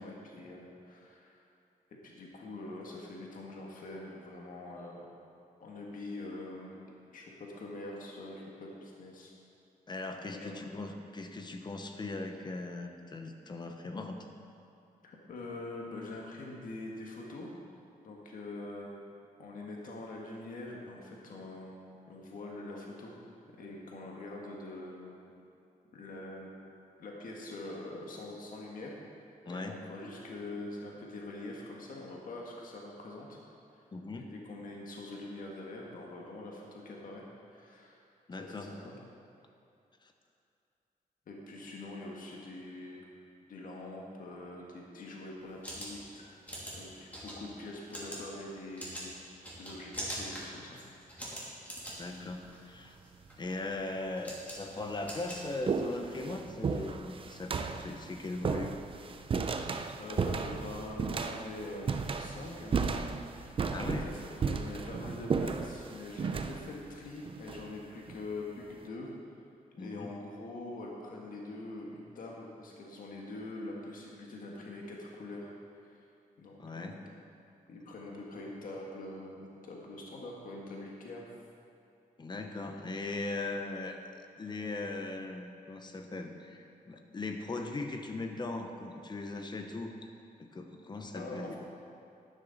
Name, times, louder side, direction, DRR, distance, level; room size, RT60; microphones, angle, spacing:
voice 1, 0.0-1.4 1.9-5.1 5.6-6.8 7.1-9.3 10.3-10.6 15.0-17.5 18.0-19.0 19.4-21.8 22.1-23.1 23.6-25.2 25.9-26.5 27.0-28.9 29.4-33.4 33.7-33.8 34.1-37.2 37.5-38.0 38.4-38.9 41.3-43.0 43.5-46.4 46.7-49.1 49.6-50.8 60.0-61.9 62.2-63.0 63.3-69.1 69.7-75.5 75.8-76.1 76.4-77.0 77.7-81.2 91.1-91.6, left 2 dB, 65° left, -2 dB, 1.6 m, -44 dB
voice 2, 9.9-14.3 29.5-29.8 33.9-34.3 38.3-38.8 40.0-40.1 52.0-53.0 53.4-58.8 63.7-64.1 69.8-70.1 76.6-77.0 82.2-84.0 84.4-90.0 90.4-91.6, left 2 dB, 30° left, 5 dB, 0.9 m, -39 dB
sound 1, 45.4-56.1, equal, 10° left, 2.8 m, -44 dB
sound 2, 51.9-52.3 53.3-53.4 54.2-54.3 54.7-68.2, right 5 dB, 35° right, 0.5 m, -35 dB
12.0 x 11.0 x 4.0 m, 2.6 s
wide cardioid pair, 140°, 15 cm